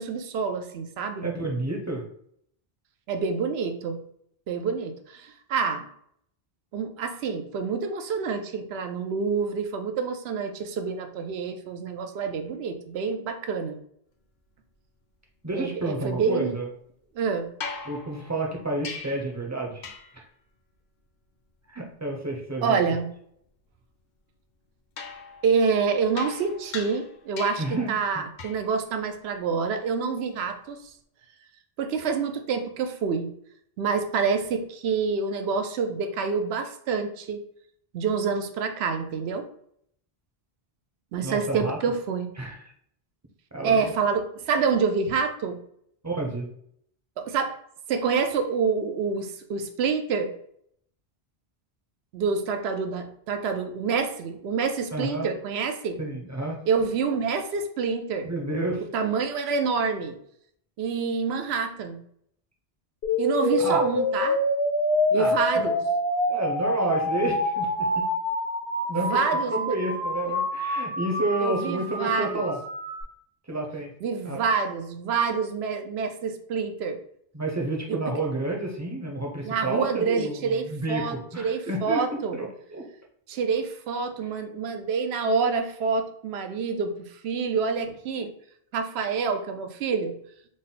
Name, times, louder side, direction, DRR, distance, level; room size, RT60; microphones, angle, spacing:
voice 1, 0.0-1.3 3.1-4.0 4.5-5.9 6.7-13.8 15.5-16.6 17.2-17.5 22.6-23.1 25.4-30.8 31.8-33.3 33.8-37.4 37.9-39.5 41.1-42.3 43.6-45.6 47.2-47.6 47.9-50.3 52.1-56.0 56.7-58.3 58.9-60.2 60.8-62.0 63.2-64.4 65.1-65.8 68.9-69.7 71.4-72.5 74.0-77.0 77.9-78.0 79.4-82.4 83.3-88.3 88.7-90.2, right 5 dB, 90° right, 6 dB, 0.8 m, -27 dB
voice 2, 1.2-2.0 15.4-16.6 17.8-19.8 21.7-22.8 27.6-28.2 41.2-41.8 42.4-42.7 43.5-43.9 46.0-46.5 54.9-55.3 56.0-56.6 58.2-58.8 63.6-63.8 65.1-65.7 66.3-68.1 68.9-69.2 69.5-72.6 73.5-73.9 74.2-74.4 77.3-82.0 82.3-82.8, right 2 dB, 20° right, 0 dB, 0.5 m, -30 dB
sound 1, 17.6-19.4 19.8-20.3 25.0-27.8 28.4-28.7 30.7-30.8, left 5 dB, 55° left, 0.6 m, -40 dB
sound 2, 63.0-73.0, left 1 dB, 80° left, 1.2 m, -27 dB
3.7 x 2.1 x 4.0 m, 0.68 s
omnidirectional pair, 1.0 m